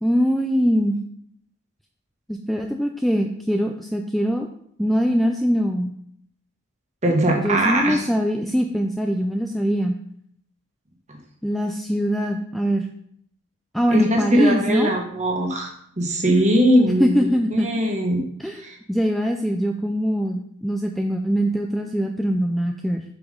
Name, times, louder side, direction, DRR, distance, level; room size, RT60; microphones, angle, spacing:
voice 1, 0.0-1.0 2.3-4.5 4.8-5.9 7.3-10.0 11.4-12.9 13.7-15.0 17.0-17.7 18.4-18.6 18.9-23.0, equal, ahead, 3 dB, 0.3 m, -22 dB
voice 2, 7.0-8.1 13.9-15.7 16.0-17.1 17.5-18.2 18.6-18.8, right 1 dB, 35° right, 1 dB, 1.4 m, -20 dB
7.0 x 4.9 x 3.8 m, 0.68 s
head